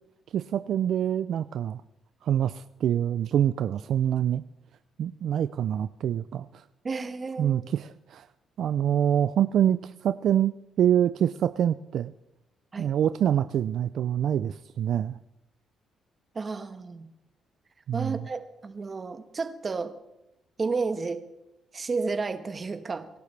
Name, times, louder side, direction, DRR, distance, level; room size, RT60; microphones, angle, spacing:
voice 1, 0.3-1.8 2.2-4.4 5.0-6.6 7.4-8.3 8.6-12.1 12.8-15.2 17.9-18.3, right 10 dB, 70° right, 13 dB, 0.4 m, -26 dB
voice 2, 6.8-7.6 12.7-12.9 16.3-17.0 17.9-19.9 20.6-21.2 21.7-23.2, right 4 dB, 35° right, 9 dB, 1.2 m, -32 dB
25.0 x 11.5 x 3.3 m, 0.88 s
cardioid pair, 90°, 0 cm